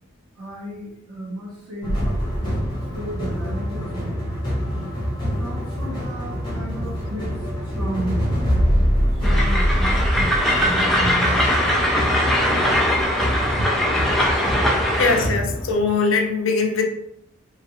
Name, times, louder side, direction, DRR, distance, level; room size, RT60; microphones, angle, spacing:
voice 1, 0.4-4.3 4.7-4.9 5.2-7.4 7.6-8.3 9.1-11.9 13.6-13.7, equal, 90° right, -5 dB, 0.9 m, -33 dB
sound 1, 1.8-15.7, equal, 20° left, 1.0 m, -24 dB
Train, 9.2-15.3, equal, ahead, 0.3 m, -21 dB
voice 2, 15.0-16.9, left 4 dB, 75° left, 4 dB, 0.5 m, -21 dB
3.2 x 2.4 x 2.8 m, 0.76 s
head